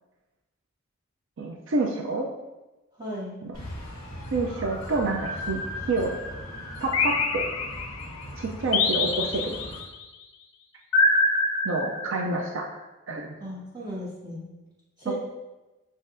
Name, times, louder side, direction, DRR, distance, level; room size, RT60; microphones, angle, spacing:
voice 1, 1.4-2.3 4.3-5.6 5.9-6.1 6.8-7.5 8.4-9.6 11.6-12.6 13.1-13.3, right 3 dB, 60° right, 0 dB, 0.4 m, -28 dB
voice 2, 3.0-3.4 13.4-14.5 15.0-15.2, equal, 20° right, -9 dB, 1.4 m, -35 dB
sound 1, 3.5-9.8, left 1 dB, 15° left, 1.3 m, -38 dB
sound 2, 6.9-8.1 8.7-9.9 10.9-12.4, left 3 dB, 80° left, 0.5 m, -25 dB
7.2 x 2.5 x 2.5 m, 1.1 s
head